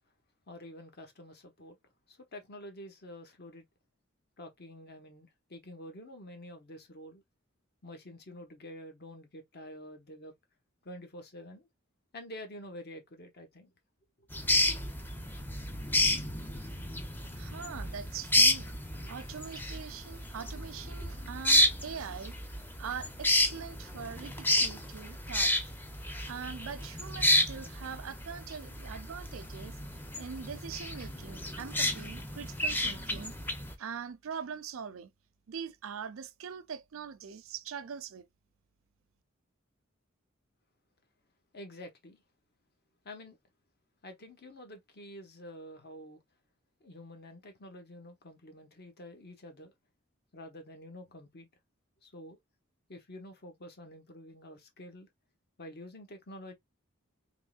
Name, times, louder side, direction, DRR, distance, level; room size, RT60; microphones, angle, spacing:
voice 1, 0.5-1.8 2.1-3.6 4.4-7.2 7.8-10.3 10.8-11.7 12.1-13.7 41.5-42.2 43.0-43.4 44.0-46.2 46.8-49.7 50.3-51.5 52.0-52.4 52.9-55.1 55.6-56.5, left 1 dB, 50° left, 1.0 m, -48 dB
sound 1, 14.3-33.7, left 1 dB, 10° left, 0.6 m, -31 dB
voice 2, 17.3-18.8 19.1-22.3 22.8-25.5 26.2-29.8 30.2-33.3 33.8-35.1 35.5-38.3, right 7 dB, 90° right, 0.5 m, -42 dB
3.7 x 3.0 x 2.3 m
head